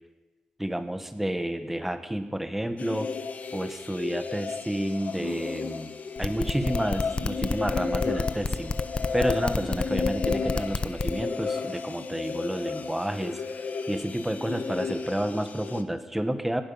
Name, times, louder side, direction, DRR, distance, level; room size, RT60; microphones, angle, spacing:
voice 1, 0.6-3.1 3.5-5.9 6.2-8.8 9.1-13.4 13.9-16.6, right 1 dB, 10° right, 9 dB, 1.2 m, -30 dB
sound 1, 2.8-15.8, left 5 dB, 60° left, 1.1 m, -33 dB
sound 2, 6.2-11.1, left 3 dB, 35° left, 0.7 m, -29 dB
18.0 x 12.0 x 5.6 m, 1.2 s
wide cardioid pair, 110°, 3 cm